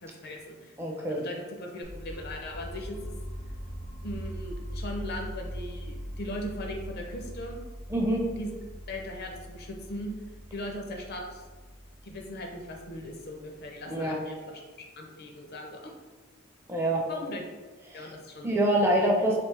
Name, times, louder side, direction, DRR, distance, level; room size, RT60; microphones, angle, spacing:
voice 1, 0.0-0.8 1.1-3.1 4.0-7.6 8.3-8.5 8.9-10.1 10.5-11.4 12.0-14.6 15.0-15.8 17.1-17.4 17.9-18.6, left 1 dB, 50° left, 2 dB, 0.5 m, -39 dB
voice 2, 0.8-1.2 7.9-8.3 13.9-14.2 16.7-17.0 17.9-18.1 18.4-19.4, right 1 dB, 10° right, -1 dB, 0.5 m, -25 dB
sound 1, 1.8-13.7, equal, 90° left, 1.2 m, -41 dB
3.4 x 3.1 x 3.2 m, 1.3 s
head